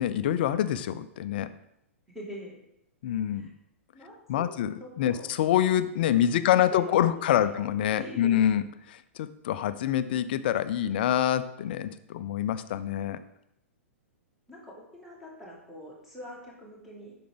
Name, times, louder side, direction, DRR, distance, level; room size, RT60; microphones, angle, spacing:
voice 1, 0.0-1.5 3.0-3.5 4.3-13.2, left 11 dB, 45° left, 14 dB, 0.4 m, -26 dB
voice 2, 2.1-2.6 3.3-3.5 3.9-5.3 6.1-7.6 7.9-8.5 14.5-17.1, equal, 5° right, -4 dB, 2.2 m, -44 dB
8.3 x 5.9 x 3.8 m, 0.83 s
figure-of-eight pair, 105°, 7 cm